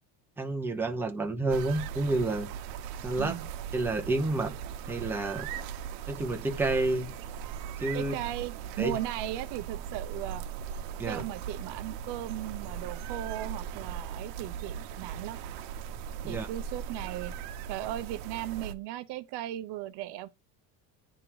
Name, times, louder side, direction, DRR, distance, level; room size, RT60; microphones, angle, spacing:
voice 1, 0.4-2.5 3.0-3.4 3.7-4.5 4.9-5.5 6.1-7.1 7.8-8.1 8.8-9.0 11.0-11.2 16.2-16.5, right 2 dB, 5° right, 0.9 m, -29 dB
sound 1, 1.5-18.7, right 8 dB, 80° right, 1.1 m, -39 dB
voice 2, 3.2-3.5 7.9-10.4 11.1-15.4 16.3-17.3 17.7-20.3, right 14 dB, 60° right, 0.8 m, -37 dB
9.9 x 3.7 x 4.8 m
cardioid pair, 145°, 47 cm